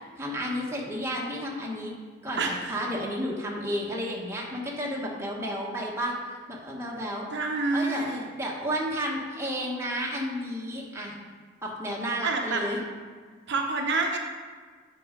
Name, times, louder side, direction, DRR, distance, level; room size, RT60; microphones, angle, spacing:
voice 1, 0.2-1.9 2.2-6.1 6.5-7.3 7.7-11.2 11.6-12.8, equal, 15° right, -3 dB, 1.1 m, -32 dB
voice 2, 2.4-2.8 7.3-8.2 12.2-12.6 13.5-14.2, right 3 dB, 60° right, 2 dB, 0.8 m, -27 dB
8.5 x 4.6 x 5.1 m, 1.5 s
head